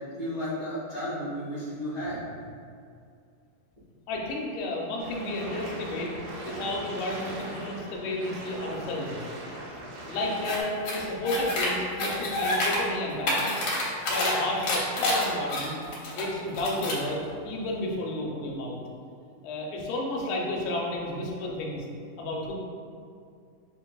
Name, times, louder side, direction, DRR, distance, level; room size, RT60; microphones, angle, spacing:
voice 1, 0.2-2.4, equal, 55° right, -14 dB, 0.7 m, -33 dB
voice 2, 4.1-6.1 6.5-9.2 10.1-13.5 14.0-15.8 16.1-17.2 17.4-18.8 19.4-21.9 22.2-22.5, left 1 dB, 90° left, -1 dB, 2.3 m, -32 dB
sound 1, 5.0-10.6, right 1 dB, 85° right, 2.4 m, -40 dB
sound 2, 10.4-10.6 10.8-11.7 12.0-12.8 13.1-14.3 14.6-16.2 16.5-17.0, left 2 dB, 70° left, 1.7 m, -28 dB
6.7 x 2.6 x 2.3 m, 2.3 s
omnidirectional pair, 3.8 m